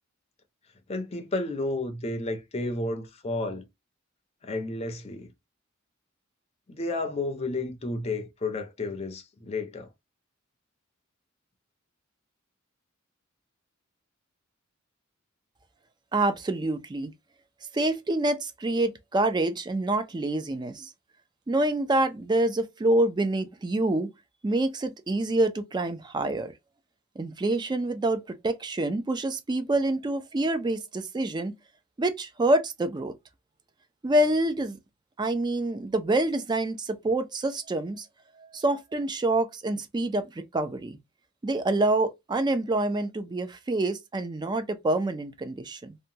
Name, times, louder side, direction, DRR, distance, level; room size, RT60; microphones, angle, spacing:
voice 1, 0.9-3.6 4.4-5.3 6.7-9.9, left 2 dB, 30° left, 0.5 m, -32 dB
voice 2, 16.1-17.1 17.7-20.9 21.5-24.1 24.4-26.5 27.2-31.5 32.0-33.1 34.0-34.8 35.2-38.1 38.4-41.0 41.4-46.0, right 2 dB, 20° right, 0.4 m, -27 dB
2.8 x 2.2 x 2.6 m
head